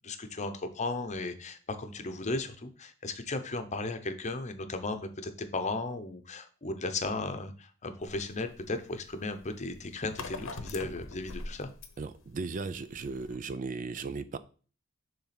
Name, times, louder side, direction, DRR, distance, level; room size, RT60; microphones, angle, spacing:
voice 1, 0.0-11.7, left 2 dB, 35° left, 8 dB, 0.8 m, -35 dB
sound 1, 8.0-13.4, left 3 dB, 75° left, 0.9 m, -44 dB
voice 2, 12.0-14.4, right 4 dB, 40° right, 13 dB, 0.4 m, -36 dB
6.9 x 3.6 x 5.9 m, 0.38 s
head